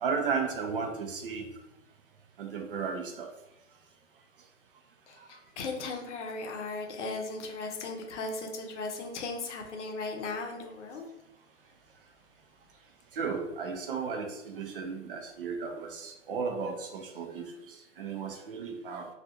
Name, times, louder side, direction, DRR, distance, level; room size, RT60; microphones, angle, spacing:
voice 1, 0.0-1.5 2.4-3.3 13.1-19.1, right 5 dB, 45° right, 4 dB, 0.5 m, -34 dB
voice 2, 5.1-11.1, left 3 dB, 65° left, 2 dB, 0.7 m, -37 dB
2.4 x 2.3 x 2.7 m, 0.93 s
hypercardioid pair, 155°, 38 cm